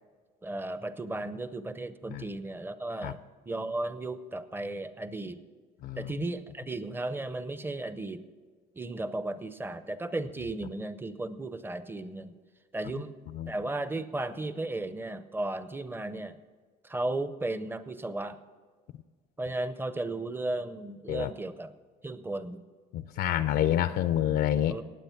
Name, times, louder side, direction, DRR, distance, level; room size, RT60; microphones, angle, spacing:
voice 1, 0.4-3.2 3.5-5.4 6.0-8.2 8.8-12.4 12.7-13.1 13.5-16.4 16.8-18.4 19.4-21.7 22.0-22.6 24.7-24.8, right 2 dB, 10° right, 13 dB, 0.7 m, -35 dB
voice 2, 5.8-6.1 13.3-13.5 21.1-21.3 22.9-24.8, left 11 dB, 70° left, 13 dB, 0.6 m, -28 dB
18.5 x 7.9 x 5.8 m, 1.5 s
cardioid pair, 110°, 17 cm